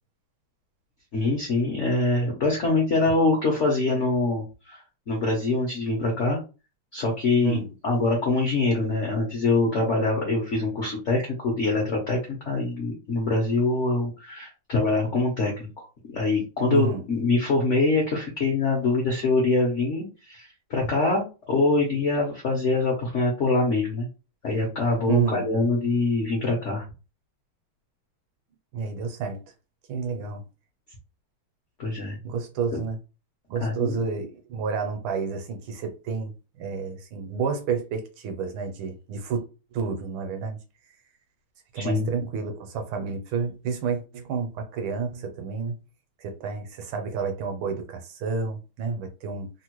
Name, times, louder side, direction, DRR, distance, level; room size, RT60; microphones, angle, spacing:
voice 1, 1.1-6.4 6.9-12.2 12.5-15.7 16.1-24.1 24.4-26.8 31.8-32.2 32.7-32.8 33.6-33.9 41.7-42.1, left 3 dB, 70° left, 0.7 m, -24 dB
voice 2, 16.7-17.0 25.1-25.5 28.7-29.4 29.9-30.4 32.2-33.0 33.5-39.5 39.7-40.6 41.7-45.8 46.2-49.5, right 5 dB, 75° right, 1.4 m, -30 dB
3.4 x 2.1 x 2.9 m
omnidirectional pair, 2.3 m